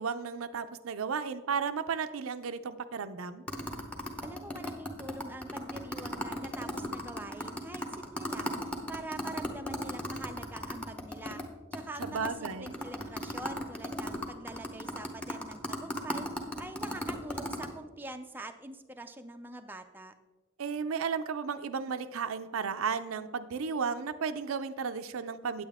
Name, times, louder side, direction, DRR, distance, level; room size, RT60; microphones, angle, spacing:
voice 1, 0.0-3.4 12.0-12.8 20.6-25.6, right 6 dB, 90° right, 10 dB, 0.5 m, -34 dB
sound 1, 3.5-11.4 11.7-11.8 12.0-17.7, left 1 dB, 5° left, 0.8 m, -36 dB
voice 2, 4.2-11.4 11.7-16.3 16.6-20.1, right 2 dB, 10° right, 6 dB, 0.4 m, -44 dB
8.9 x 8.7 x 3.5 m, 1.2 s
head